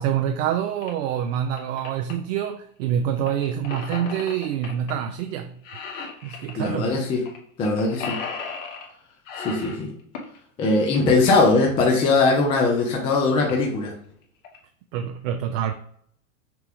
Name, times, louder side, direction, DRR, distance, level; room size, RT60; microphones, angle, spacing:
voice 1, 0.0-5.6 6.2-7.0 14.9-15.7, right 9 dB, 60° right, 0.5 m, -26 dB
sound 1, 0.8-0.9 1.3-2.1 3.3-4.9 5.2-5.4 5.6-6.5 7.3-7.4 7.6-8.9 9.2-10.4 12.0-12.1 12.7-12.8 13.0-13.1 13.4-13.7 14.2-14.6, left 5 dB, 60° left, 1.3 m, -35 dB
voice 2, 6.6-7.2 7.6-8.2 9.4-9.9 10.6-13.9, left 3 dB, 15° left, 0.3 m, -20 dB
5.9 x 2.2 x 3.5 m
hypercardioid pair, 120°, 44 cm